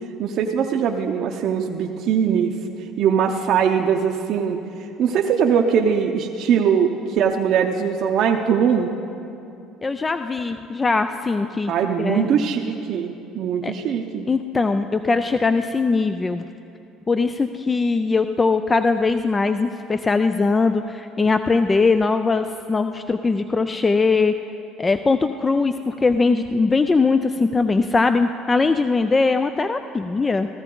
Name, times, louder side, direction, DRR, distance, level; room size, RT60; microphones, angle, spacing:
voice 1, 0.2-2.5 3.0-4.6 5.0-8.9 11.7-14.2, right 7 dB, 60° right, 2 dB, 0.7 m, -21 dB
voice 2, 9.8-11.7 12.0-12.3 13.6-13.7 14.3-16.4 17.1-24.3 24.8-30.5, left 4 dB, 20° left, 9 dB, 0.4 m, -20 dB
15.5 x 13.5 x 3.8 m, 2.7 s
supercardioid pair, 100°, 0 cm